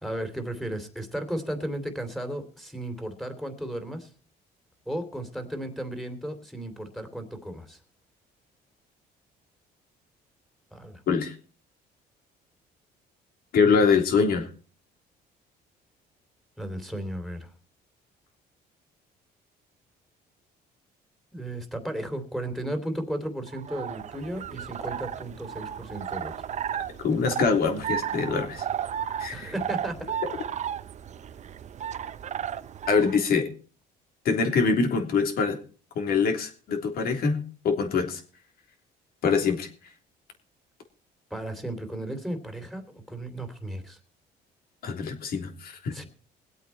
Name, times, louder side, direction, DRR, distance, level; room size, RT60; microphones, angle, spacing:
voice 1, 0.0-4.1 4.9-7.8 10.7-11.0 16.6-17.5 21.3-26.3 29.3-30.1 41.3-44.0 45.9-46.1, right 1 dB, ahead, 7 dB, 3.0 m, -34 dB
voice 2, 13.5-14.5 26.7-28.6 29.2-29.5 32.9-33.5 34.2-35.6 35.9-38.2 39.2-39.7 44.8-45.9, left 5 dB, 65° left, 5 dB, 3.4 m, -24 dB
sound 1, 23.5-33.2, right 9 dB, 45° right, 0.7 m, -34 dB
22.0 x 8.4 x 4.3 m, 0.38 s
cardioid pair, 110°, 17 cm